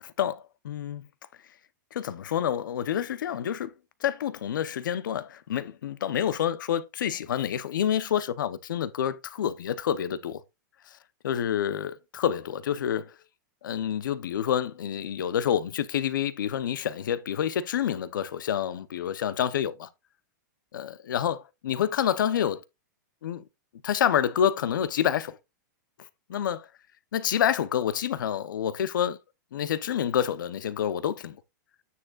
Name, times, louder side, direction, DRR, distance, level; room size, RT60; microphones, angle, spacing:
voice 1, 0.0-1.1 1.9-3.7 4.0-10.4 11.2-13.1 13.6-19.9 20.7-21.4 21.6-22.6 23.2-23.4 23.8-25.4 26.3-26.7 27.1-29.2 29.5-31.4, left 9 dB, 85° left, 0.8 m, -28 dB
9.4 x 6.3 x 2.4 m
supercardioid pair, 160°, 10 cm